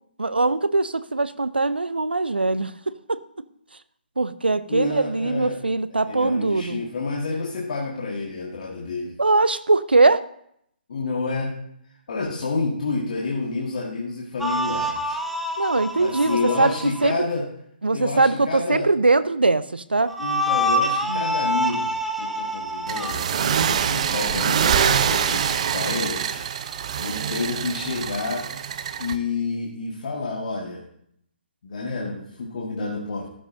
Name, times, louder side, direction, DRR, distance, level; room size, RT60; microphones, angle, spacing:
voice 1, 0.2-3.2 4.2-6.8 9.2-10.2 15.6-16.7 17.0-17.2 17.8-20.1 21.1-21.4 23.3-23.7, right 3 dB, 75° right, 15 dB, 0.8 m, -21 dB
voice 2, 4.7-5.6 5.9-9.2 10.9-11.6 12.1-15.2 16.0-17.5 17.9-18.9 20.2-23.3 23.6-26.4 27.0-28.5 29.0-30.9 31.6-33.3, left 3 dB, 50° left, -3 dB, 1.9 m, -29 dB
sound 1, 14.4-17.1 20.1-23.1, equal, ahead, 1.0 m, -26 dB
sound 2, 22.9-29.2, right 8 dB, 40° right, 0.8 m, -24 dB
14.0 x 13.0 x 2.9 m, 0.72 s
figure-of-eight pair, 135°, 5 cm